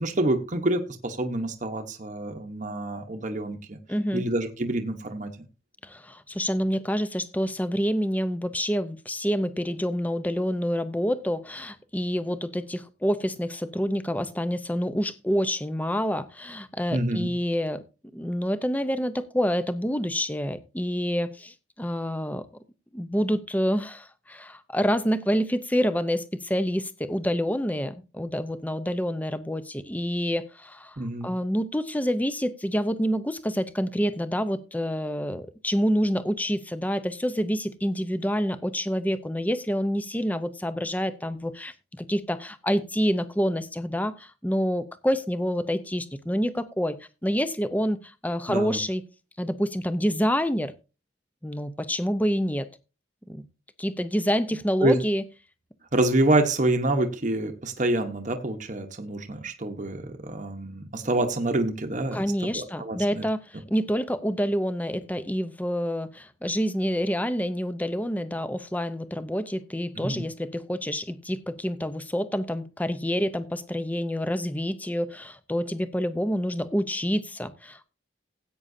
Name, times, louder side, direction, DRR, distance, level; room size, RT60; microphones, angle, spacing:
voice 1, 0.0-3.8 4.1-5.3 16.9-17.3 31.0-31.3 48.5-48.8 54.8-55.0 55.9-62.2 62.5-63.2 70.0-70.2, right 2 dB, 40° right, 5 dB, 1.0 m, -27 dB
voice 2, 3.9-4.2 5.8-17.8 18.1-22.5 22.9-31.0 31.2-49.0 49.4-50.7 51.4-52.7 53.3-53.4 53.8-55.2 62.1-77.9, equal, 10° left, 12 dB, 0.7 m, -27 dB
16.0 x 8.7 x 2.7 m, 0.31 s
head